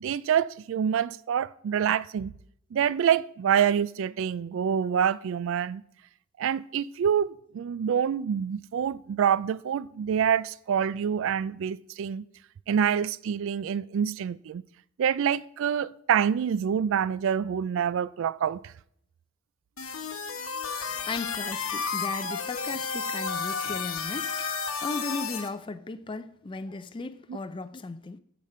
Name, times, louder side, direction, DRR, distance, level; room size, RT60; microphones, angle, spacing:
voice 1, 0.0-2.3 2.7-5.8 6.4-12.3 12.7-14.6 15.0-18.6, right 8 dB, 60° right, 0.3 m, -26 dB
sound 1, 19.8-25.5, left 5 dB, 70° left, 1.1 m, -32 dB
voice 2, 21.0-28.2, left 3 dB, 25° left, 0.4 m, -36 dB
15.5 x 5.2 x 4.3 m
head